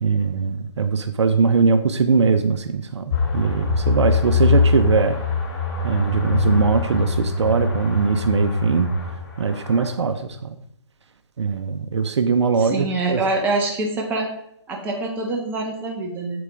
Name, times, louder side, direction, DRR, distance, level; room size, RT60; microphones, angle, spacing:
voice 1, 0.0-5.2 5.8-8.9 9.4-10.2 11.4-13.2, right 5 dB, 70° right, 9 dB, 0.7 m, -21 dB
sound 1, 3.1-9.9, left 4 dB, 40° left, 2.6 m, -23 dB
voice 2, 12.6-14.3 14.7-16.4, right 2 dB, 10° right, 0 dB, 1.3 m, -25 dB
7.9 x 7.9 x 3.7 m, 0.75 s
hypercardioid pair, 150°, 16 cm